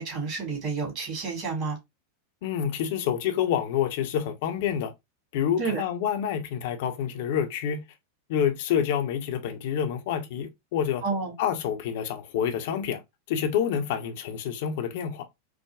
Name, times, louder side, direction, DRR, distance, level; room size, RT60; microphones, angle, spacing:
voice 1, 0.0-1.8 5.6-5.8 11.0-11.3, right 4 dB, 40° right, 1.9 m, -30 dB
voice 2, 2.4-4.9 5.3-7.8 8.3-11.0 11.4-13.0 13.3-15.2, left 8 dB, 50° left, 0.6 m, -28 dB
4.7 x 2.1 x 2.3 m
figure-of-eight pair, 90°, 0 cm